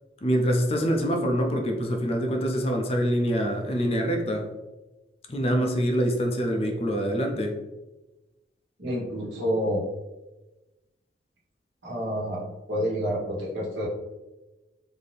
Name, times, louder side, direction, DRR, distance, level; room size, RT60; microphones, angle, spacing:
voice 1, 0.2-4.5 5.3-7.6, equal, 30° left, 3 dB, 0.4 m, -25 dB
voice 2, 8.8-9.8 11.8-12.4 12.7-13.9, equal, 75° right, -5 dB, 1.3 m, -28 dB
4.1 x 2.7 x 3.3 m, 1.1 s
head